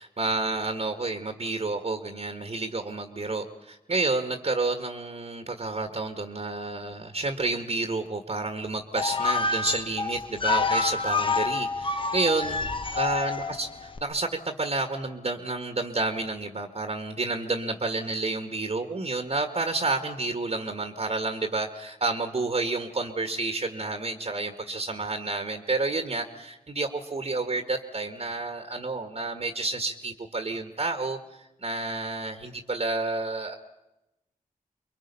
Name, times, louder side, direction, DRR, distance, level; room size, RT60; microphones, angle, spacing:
voice 1, 0.0-13.7 14.0-31.2 31.6-33.5, right 3 dB, 50° right, 6 dB, 1.7 m, -30 dB
sound 1, 9.0-14.0, left 4 dB, 35° left, 1.2 m, -28 dB
25.5 x 22.5 x 5.6 m, 0.96 s
cardioid pair, 50°, 15 cm